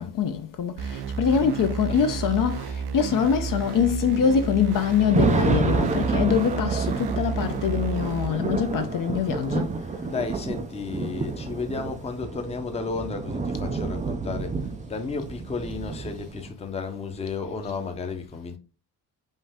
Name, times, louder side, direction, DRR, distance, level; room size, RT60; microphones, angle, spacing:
voice 1, 0.0-9.7, left 7 dB, 50° left, 0.7 m, -24 dB
sound 1, 0.8-8.3, right 5 dB, 70° right, 0.7 m, -31 dB
sound 2, 3.8-16.5, right 4 dB, 20° right, 0.4 m, -29 dB
voice 2, 10.0-18.6, left 4 dB, 15° left, 0.7 m, -33 dB
5.4 x 2.7 x 3.4 m
cardioid pair, 145°, 41 cm